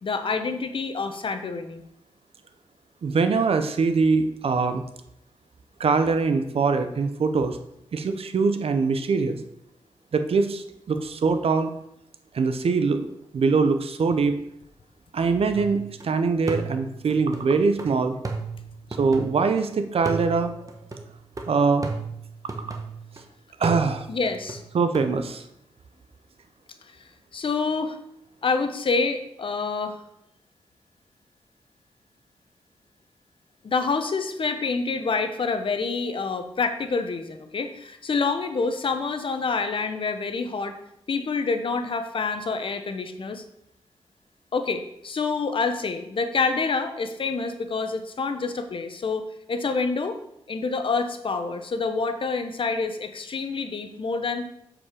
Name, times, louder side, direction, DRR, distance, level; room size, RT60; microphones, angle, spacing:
voice 1, 0.0-1.8 24.1-24.6 27.3-28.0 28.4-30.0 33.6-40.8 41.1-43.4 44.5-50.2 50.5-54.4, left 4 dB, 55° left, 8 dB, 0.9 m, -27 dB
voice 2, 3.0-4.8 5.8-7.6 7.9-9.4 10.1-11.7 12.3-13.1 13.3-14.4 15.1-18.1 19.0-20.7 21.5-21.9 22.7-22.8 23.6-24.1 24.7-25.4, right 4 dB, 65° right, 9 dB, 0.8 m, -23 dB
sound 1, 15.6-16.1 16.5-19.6 20.1-23.2 23.6-25.1, right 3 dB, 35° right, 1.1 m, -35 dB
7.3 x 4.9 x 4.9 m, 0.78 s
cardioid pair, 70°, 11 cm